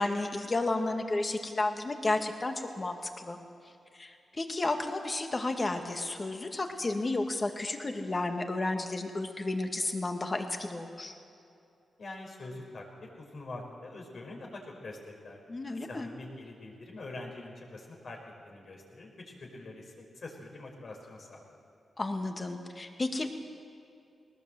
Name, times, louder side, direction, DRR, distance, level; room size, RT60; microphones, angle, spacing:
voice 1, 0.0-3.4 3.9-11.1 15.5-16.1 22.0-23.5, left 2 dB, 30° left, 5 dB, 1.9 m, -32 dB
voice 2, 12.0-15.4 15.8-21.5, left 2 dB, 55° left, 0 dB, 4.9 m, -45 dB
21.0 x 19.0 x 7.8 m, 2.6 s
wide cardioid pair, 100°, 0 cm